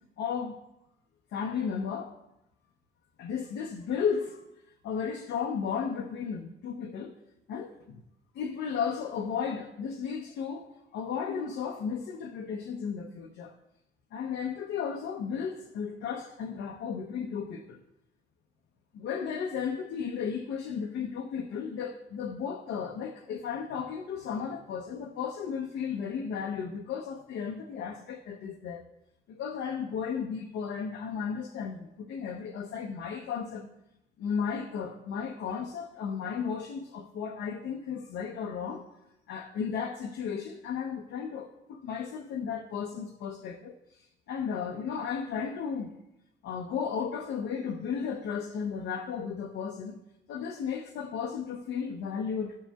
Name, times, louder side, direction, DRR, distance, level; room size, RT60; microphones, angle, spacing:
voice 1, 0.2-0.6 1.3-2.1 3.2-4.4 4.8-7.2 7.5-8.0 8.3-13.6 14.1-17.8 18.9-28.8 29.3-33.7 34.2-38.9 39.3-45.9 46.4-50.0 50.3-52.6, left 6 dB, 75° left, 0.6 m, -34 dB
12.5 x 7.3 x 2.3 m
cardioid pair, 90°, 20 cm